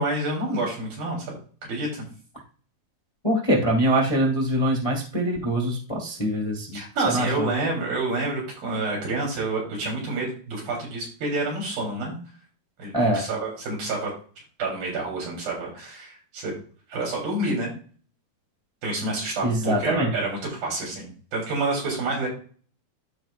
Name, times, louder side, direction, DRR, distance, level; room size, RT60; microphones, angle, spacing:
voice 1, 0.0-1.4 1.7-2.0 6.7-12.2 12.8-14.1 14.6-16.5 16.9-17.7 18.8-22.3, right 2 dB, 85° right, -3 dB, 5.4 m, -28 dB
voice 2, 3.2-7.5 12.9-13.2 19.4-20.1, right 1 dB, 20° left, -1 dB, 0.9 m, -23 dB
14.0 x 4.8 x 2.5 m, 0.42 s
omnidirectional pair, 3.9 m